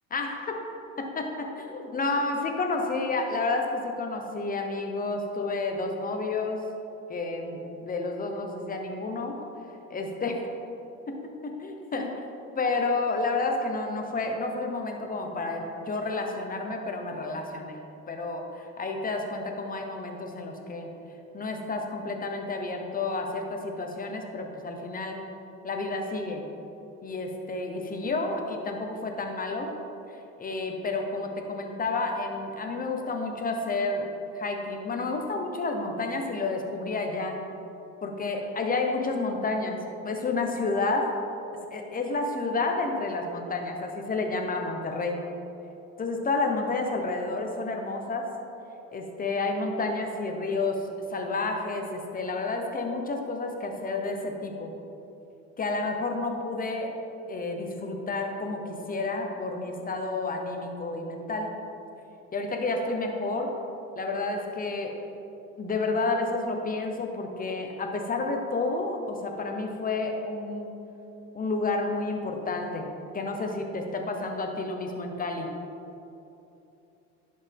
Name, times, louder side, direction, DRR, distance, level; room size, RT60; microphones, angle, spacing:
voice 1, 0.1-0.7 1.0-6.6 7.1-9.4 9.9-10.5 11.1-11.3 11.6-12.1 12.5-17.8 18.1-20.9 21.3-25.2 25.6-26.4 27.0-29.7 30.4-34.1 34.4-37.5 38.0-39.8 40.0-41.2 41.7-45.2 46.0-48.3 48.9-54.7 55.6-57.0 57.3-61.5 62.3-63.5 64.0-64.9 65.6-70.7 71.3-72.9 73.1-75.5, left 3 dB, 25° left, 3 dB, 1.1 m, -30 dB
11.0 x 5.4 x 3.6 m, 2.9 s
supercardioid pair, 95°, 34 cm